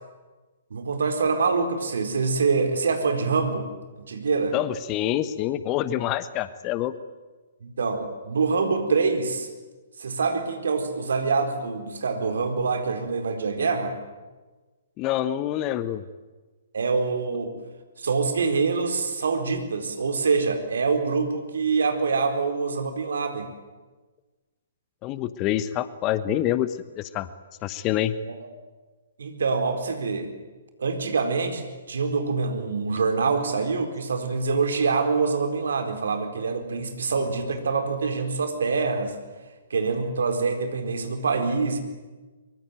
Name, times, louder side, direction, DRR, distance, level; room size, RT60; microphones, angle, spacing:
voice 1, 0.7-3.7 4.1-4.6 7.6-9.5 10.0-13.9 16.7-17.6 18.0-23.5 28.2-28.5 29.2-30.3 30.8-39.1 39.7-41.8, right 4 dB, 65° right, 6 dB, 4.2 m, -25 dB
voice 2, 4.5-6.9 15.0-16.0 25.0-27.3 27.6-28.2, left 12 dB, 25° left, 14 dB, 1.1 m, -26 dB
24.0 x 23.5 x 9.3 m, 1.3 s
figure-of-eight pair, 125°, 0 cm